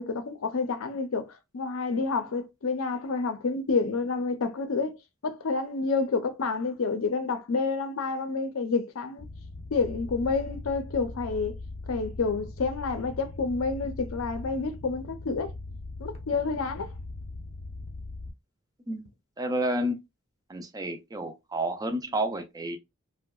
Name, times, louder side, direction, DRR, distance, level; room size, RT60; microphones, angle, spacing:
voice 1, 0.0-5.0 5.2-9.3 9.7-11.5 11.9-15.5 16.0-16.9, left 4 dB, 70° left, 0.5 m, -29 dB
sound 1, 9.2-18.3, left 2 dB, 30° left, 0.6 m, -40 dB
voice 2, 19.4-20.0 20.5-22.8, right 1 dB, 15° right, 0.4 m, -30 dB
2.7 x 2.1 x 2.2 m
head